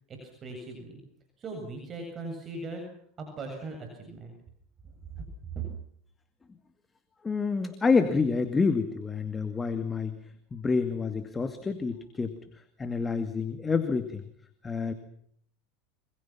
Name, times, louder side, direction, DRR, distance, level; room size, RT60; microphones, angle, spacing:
voice 1, 0.1-1.0 1.4-2.8 3.2-4.3 5.1-5.2 5.5-5.7, right 3 dB, 30° right, 3 dB, 7.8 m, -39 dB
voice 2, 7.2-10.2 10.5-12.4 12.8-14.2 14.6-14.9, left 4 dB, 20° left, 9 dB, 2.2 m, -28 dB
27.5 x 26.0 x 6.0 m, 0.65 s
supercardioid pair, 115°, 0 cm